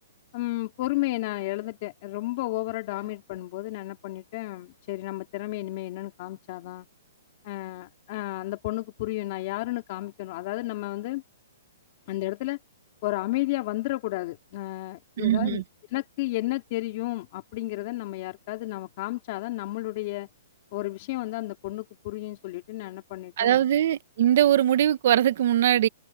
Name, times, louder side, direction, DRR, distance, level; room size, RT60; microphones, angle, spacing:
voice 1, 0.3-6.9 7.4-11.2 12.1-12.6 13.0-15.6 15.9-20.3 20.7-23.6, left 18 dB, 30° left, 3.7 m, -32 dB
voice 2, 15.2-15.6 23.4-25.9, right 11 dB, 40° right, 1.0 m, -21 dB
hypercardioid pair, 180°, 0 cm